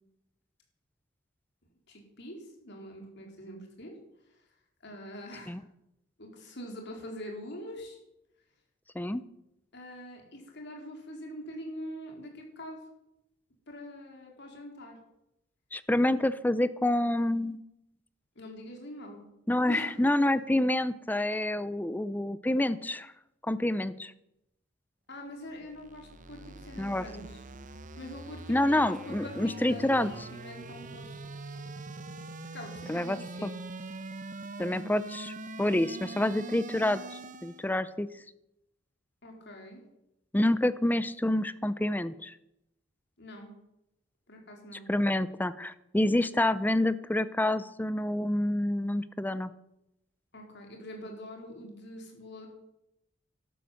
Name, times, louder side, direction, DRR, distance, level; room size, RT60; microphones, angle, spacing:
voice 1, 1.9-3.9 4.8-5.6 6.2-8.0 9.7-12.8 13.7-15.0 18.4-19.3 19.7-19.9 25.1-27.4 28.0-31.2 32.5-33.5 39.2-39.8 43.2-43.5 44.3-44.9 50.3-52.5, left 1 dB, 60° left, 2 dB, 4.2 m, -44 dB
voice 2, 15.7-17.6 19.5-23.1 23.4-24.1 26.8-27.1 28.5-30.3 32.9-33.5 34.6-35.3 35.6-38.1 40.3-42.3 44.9-49.5, left 1 dB, 10° left, 15 dB, 0.6 m, -28 dB
sound 1, 25.5-37.7, right 3 dB, 40° right, 0.8 m, -43 dB
12.5 x 11.5 x 7.9 m, 0.85 s
head